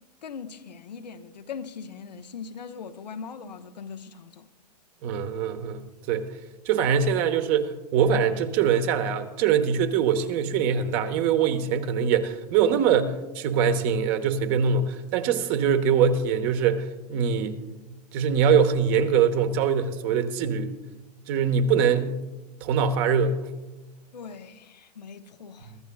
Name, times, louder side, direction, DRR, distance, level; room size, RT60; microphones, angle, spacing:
voice 1, 0.2-4.5 24.1-25.8, left 6 dB, 90° left, 0.9 m, -40 dB
voice 2, 5.0-6.3 6.6-17.6 18.1-20.7 21.3-22.1 22.6-23.4, right 7 dB, 45° right, 1.2 m, -23 dB
23.5 x 13.0 x 2.3 m
hypercardioid pair, 120°, 21 cm